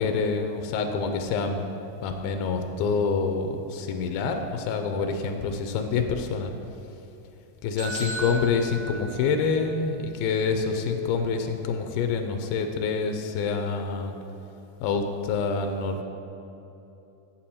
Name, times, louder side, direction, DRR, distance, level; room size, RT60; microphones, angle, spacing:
voice 1, 0.0-1.6 2.0-6.5 7.6-14.1 14.8-16.0, left 5 dB, 90° left, 5 dB, 2.5 m, -27 dB
sound 1, 7.8-9.7, right 2 dB, 60° right, 1.0 m, -35 dB
8.9 x 7.6 x 4.3 m, 3.0 s
omnidirectional pair, 4.2 m